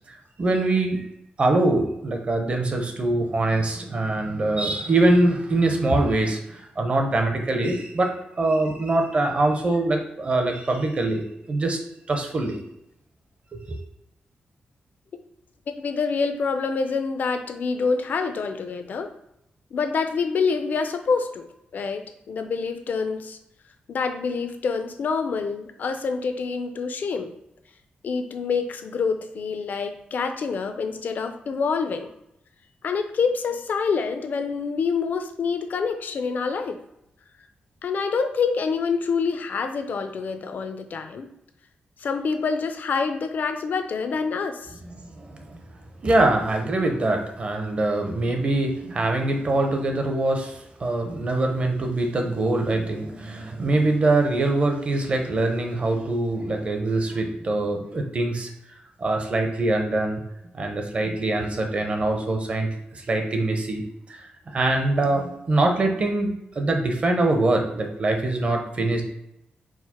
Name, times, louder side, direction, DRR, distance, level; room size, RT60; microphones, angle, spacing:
voice 1, 0.1-1.0 1.4-8.1 8.4-11.8 12.1-12.6 13.5-13.8 45.0-45.6 46.0-58.5 59.0-60.2 60.5-69.0, right 2 dB, 40° right, 3 dB, 0.8 m, -23 dB
voice 2, 15.7-19.1 19.7-21.5 21.7-23.4 23.9-27.3 28.0-32.1 32.8-36.8 37.8-41.3 42.0-44.7, left 5 dB, 60° left, 7 dB, 0.5 m, -26 dB
4.7 x 2.1 x 4.2 m, 0.83 s
wide cardioid pair, 125°, 3 cm